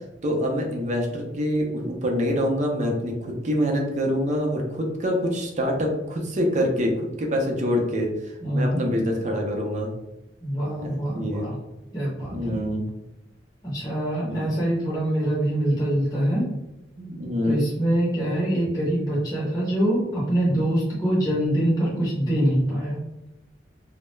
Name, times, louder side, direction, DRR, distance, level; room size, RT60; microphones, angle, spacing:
voice 1, 0.2-8.1 8.5-9.9 10.8-11.5 12.3-12.8 14.2-14.5 17.0-17.6, equal, 40° right, 1 dB, 0.5 m, -25 dB
voice 2, 8.4-8.8 10.4-11.5 11.9-12.6 13.6-16.5 17.4-23.0, right 1 dB, 20° left, -7 dB, 0.6 m, -24 dB
2.2 x 2.0 x 3.0 m, 0.94 s
head